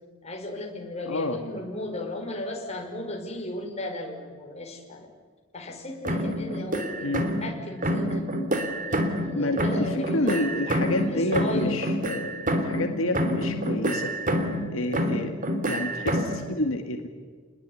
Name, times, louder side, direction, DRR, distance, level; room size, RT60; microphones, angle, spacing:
voice 1, 0.2-5.1 5.5-7.1 7.4-8.3 8.9-10.4 10.9-11.8 14.9-15.2, left 2 dB, 30° left, 2 dB, 5.5 m, -35 dB
voice 2, 1.1-1.4 7.0-7.3 9.3-14.1 14.7-15.4 15.6-17.1, left 1 dB, 80° left, 4 dB, 2.2 m, -29 dB
sound 1, 6.0-7.5 7.8-9.3 9.6-12.9 13.1-14.7 14.9-16.4, equal, 40° right, 3.2 m, -27 dB
29.0 x 21.0 x 9.8 m, 1.5 s
head